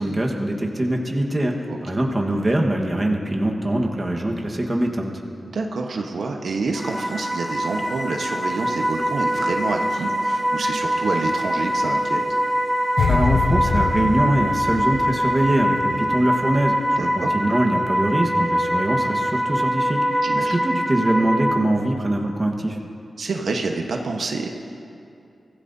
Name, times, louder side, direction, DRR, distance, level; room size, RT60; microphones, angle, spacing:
voice 1, 0.0-1.6 1.8-5.1 13.1-22.8, right 1 dB, 20° right, 0 dB, 1.4 m, -23 dB
voice 2, 5.5-12.2 17.0-17.3 20.2-20.5 23.2-24.5, right 3 dB, 80° right, 2 dB, 1.1 m, -27 dB
sound 1, 6.7-21.5, equal, 10° left, 1.7 m, -23 dB
sound 2, 13.0-16.2 16.4-16.7, left 4 dB, 65° left, 0.6 m, -24 dB
24.0 x 16.0 x 2.7 m, 2.6 s
wide cardioid pair, 125°, 0 cm